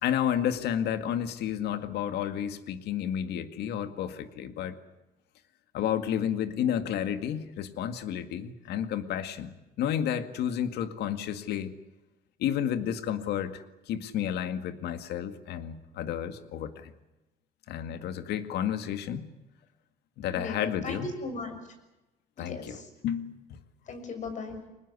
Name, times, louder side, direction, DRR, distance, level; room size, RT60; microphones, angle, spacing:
voice 1, 0.0-4.8 5.7-11.7 12.4-16.9 17.7-19.3 20.2-21.1 22.4-23.6, left 9 dB, 75° left, 10 dB, 2.1 m, -31 dB
voice 2, 20.8-21.6 22.4-22.8 23.9-24.6, left 3 dB, 45° left, 6 dB, 6.4 m, -37 dB
25.0 x 20.0 x 9.8 m, 1.0 s
cardioid pair, 110°, 17 cm